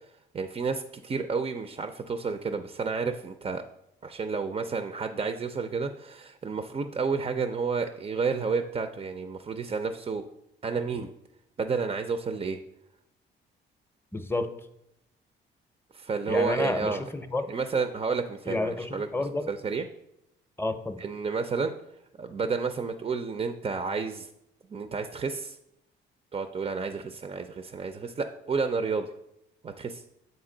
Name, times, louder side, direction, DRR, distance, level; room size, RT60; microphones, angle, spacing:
voice 1, 0.3-3.6 4.0-10.2 10.6-11.1 11.6-12.6 15.9-17.0 17.5-19.1 19.5-19.8 21.0-21.7 22.2-24.3 24.7-25.6 26.3-29.1 29.6-30.0, right 5 dB, 30° right, 8 dB, 0.4 m, -30 dB
voice 2, 14.1-14.5 16.3-17.5 18.5-19.5 20.6-21.0, left 2 dB, 10° left, 8 dB, 0.6 m, -30 dB
8.0 x 4.0 x 3.8 m, 0.80 s
cardioid pair, 90°, 20 cm